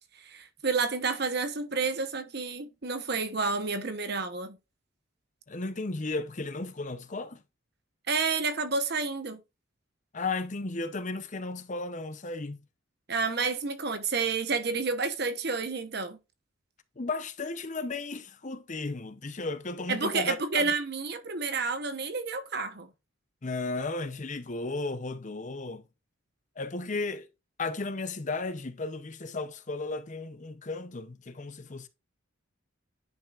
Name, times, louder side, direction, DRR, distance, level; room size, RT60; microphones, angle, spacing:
voice 1, 0.2-4.6 8.1-9.4 13.1-16.2 19.9-22.9, right 4 dB, 55° right, 1.0 m, -30 dB
voice 2, 5.5-7.4 10.1-12.6 17.0-20.7 23.4-25.8 26.6-27.3 27.6-31.9, left 3 dB, 35° left, 0.7 m, -34 dB
10.5 x 5.7 x 2.5 m
head